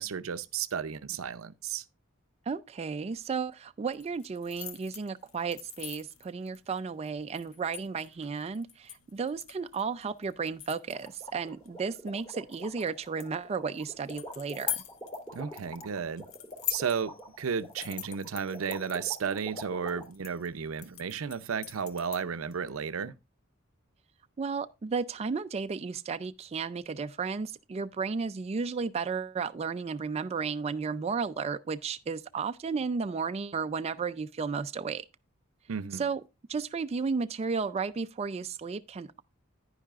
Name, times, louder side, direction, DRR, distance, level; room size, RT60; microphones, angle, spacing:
voice 1, 0.0-1.8 15.3-16.3 16.7-23.1 35.7-36.0, right 6 dB, 80° right, 0.6 m, -33 dB
voice 2, 2.5-14.8 24.4-35.1 36.0-36.2 36.5-39.2, right 5 dB, 30° right, 0.4 m, -33 dB
sound 1, 3.9-22.5, left 11 dB, 85° left, 0.8 m, -44 dB
sound 2, 10.9-20.0, equal, 20° left, 2.8 m, -44 dB
10.0 x 9.8 x 2.4 m
head